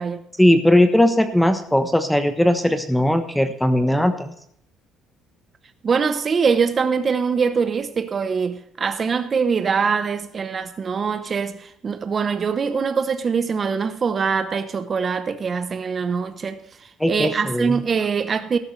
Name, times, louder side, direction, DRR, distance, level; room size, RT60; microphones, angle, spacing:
voice 1, 0.4-4.3 17.0-17.8, left 1 dB, 5° left, 1.1 m, -18 dB
voice 2, 5.8-16.6 17.1-18.6, right 5 dB, 35° right, 0.9 m, -23 dB
14.5 x 13.0 x 3.3 m
cardioid pair, 110°, 0 cm